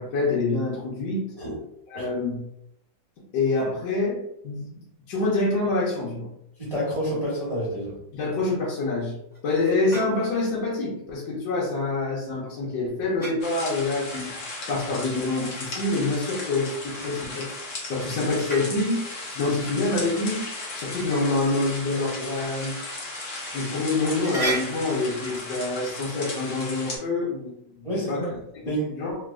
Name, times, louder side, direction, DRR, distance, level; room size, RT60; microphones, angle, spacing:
voice 1, 0.0-1.3 1.9-2.4 3.3-4.7 5.1-6.3 8.1-9.1 9.4-14.3 14.7-17.5 17.9-20.5 20.8-22.7 23.5-28.3 28.7-29.2, left 2 dB, 75° left, -6 dB, 1.4 m, -26 dB
voice 2, 6.6-8.0 27.8-28.3 28.6-29.0, right 1 dB, 25° right, -10 dB, 0.9 m, -28 dB
sound 1, 9.3-10.4 13.2-13.5 16.5-17.5 18.2-18.7 20.9-21.3 22.1-22.2 22.7-22.8 23.6-23.7 24.1-25.0, right 2 dB, 15° left, 0.3 m, -34 dB
sound 2, 13.4-27.0, left 2 dB, 55° left, 0.9 m, -36 dB
3.5 x 2.7 x 2.4 m, 0.80 s
omnidirectional pair, 2.0 m